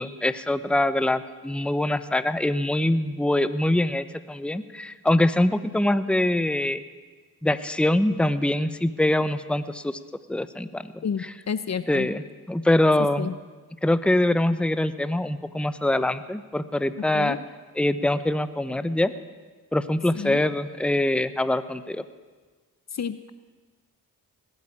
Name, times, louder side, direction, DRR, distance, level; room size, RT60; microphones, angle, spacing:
voice 1, 0.0-6.8 7.4-10.0 10.3-10.8 11.9-12.2 12.5-13.3 13.8-17.4 17.8-19.1 19.7-22.0, left 1 dB, 5° left, 13 dB, 0.8 m, -24 dB
voice 2, 11.0-12.1 13.2-13.3 17.0-17.4 20.1-20.4 22.9-23.3, left 7 dB, 45° left, 14 dB, 0.7 m, -30 dB
19.0 x 8.3 x 8.8 m, 1.3 s
cardioid pair, 50°, 36 cm